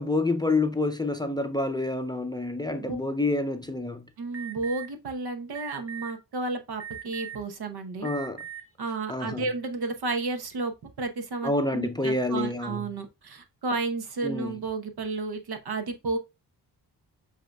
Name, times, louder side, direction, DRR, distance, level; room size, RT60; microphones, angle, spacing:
voice 1, 0.0-4.1 8.0-8.4 9.1-9.5 11.4-12.9 14.2-14.6, left 2 dB, 10° left, 0.5 m, -28 dB
voice 2, 4.2-8.1 8.8-16.2, right 3 dB, 65° right, 1.0 m, -32 dB
Alarm, 4.3-4.9 5.5-6.1 6.8-7.4 8.0-8.6, right 9 dB, 35° right, 0.9 m, -39 dB
7.4 x 2.8 x 2.3 m
supercardioid pair, 50°, 41 cm